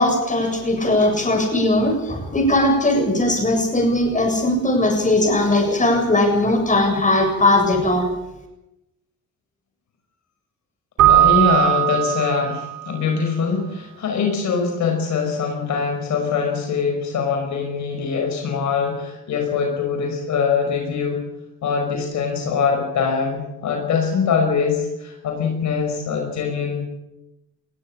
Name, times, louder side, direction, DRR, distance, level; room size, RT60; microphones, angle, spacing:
voice 1, 0.0-8.1, left 1 dB, 25° left, 3 dB, 7.4 m, -19 dB
Keyboard (musical), 11.0-12.8, right 14 dB, 85° right, 3.6 m, -17 dB
voice 2, 11.1-21.2 21.6-26.8, left 5 dB, 70° left, 3 dB, 5.1 m, -23 dB
20.5 x 16.5 x 8.7 m, 0.92 s
cardioid pair, 90°, 30 cm